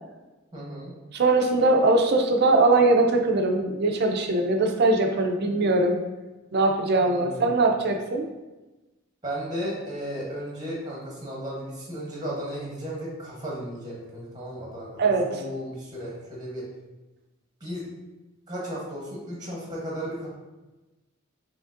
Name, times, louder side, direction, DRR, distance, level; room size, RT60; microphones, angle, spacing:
voice 1, 0.5-0.9 7.0-7.6 9.2-16.7 17.6-17.9 18.5-20.3, equal, 20° right, -4 dB, 0.9 m, -35 dB
voice 2, 1.1-6.0 6.5-8.2 15.0-15.3, right 2 dB, 55° right, 3 dB, 0.5 m, -21 dB
5.1 x 2.9 x 2.5 m, 1.1 s
head